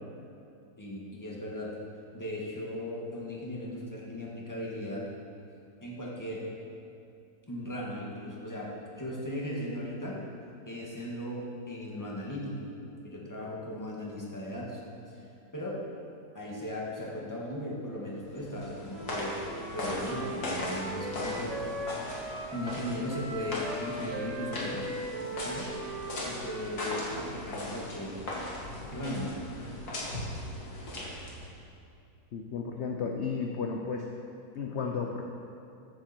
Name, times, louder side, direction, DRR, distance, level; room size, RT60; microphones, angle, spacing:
voice 1, 0.8-1.7 2.1-5.0 5.8-6.5 7.5-8.7 9.0-10.2 10.7-14.8 15.1-15.2 15.5-15.8 16.3-21.5 22.5-24.8 25.2-28.2 28.8-29.3, left 1 dB, 10° left, -4 dB, 2.0 m, -37 dB
sound 1, 18.2-31.5, left 1 dB, 70° left, 2.6 m, -38 dB
Wind instrument woodwind instrument, 18.9-27.3, right 1 dB, 25° right, 1.1 m, -39 dB
voice 2, 32.3-34.0 34.5-35.3, left 5 dB, 50° left, 2 dB, 0.9 m, -33 dB
14.0 x 9.9 x 4.5 m, 2.6 s
omnidirectional pair, 1.7 m